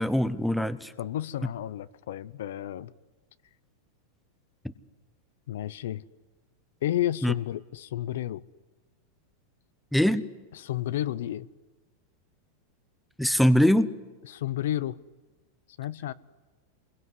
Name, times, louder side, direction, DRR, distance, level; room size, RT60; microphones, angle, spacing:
voice 1, 0.0-0.9 7.2-7.3 9.9-10.2 13.2-13.9, equal, ahead, 0.8 m, -22 dB
voice 2, 1.0-2.9 5.5-6.0 6.8-8.4 10.5-11.5 14.3-15.0 15.8-16.1, left 12 dB, 75° left, 0.8 m, -31 dB
28.0 x 22.0 x 9.7 m
supercardioid pair, 155°, 0 cm